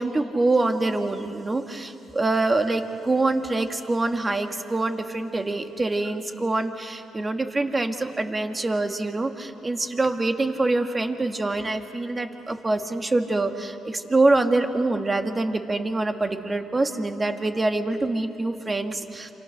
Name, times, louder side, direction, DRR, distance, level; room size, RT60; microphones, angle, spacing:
voice 1, 0.0-19.3, right 2 dB, 25° right, 6 dB, 1.8 m, -25 dB
28.0 x 27.0 x 6.6 m, 2.8 s
cardioid pair, 90°, 0 cm